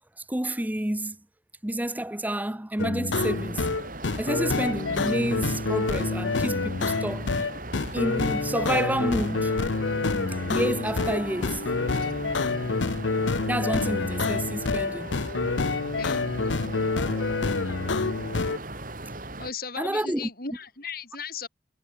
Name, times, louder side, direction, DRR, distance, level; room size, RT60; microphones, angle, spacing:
voice 1, 0.3-1.2 1.6-3.7 4.2-7.3 7.9-9.7 10.5-11.6 13.5-15.1 17.0-17.2 18.0-18.1 19.8-20.3, right 1 dB, 10° right, 0.8 m, -29 dB
sound 1, 2.8-18.6, left 3 dB, 80° left, 0.8 m, -27 dB
sound 2, 3.1-19.5, right 2 dB, 45° right, 3.6 m, -38 dB
voice 2, 16.0-16.3 19.4-21.5, left 5 dB, 50° left, 6.9 m, -36 dB
head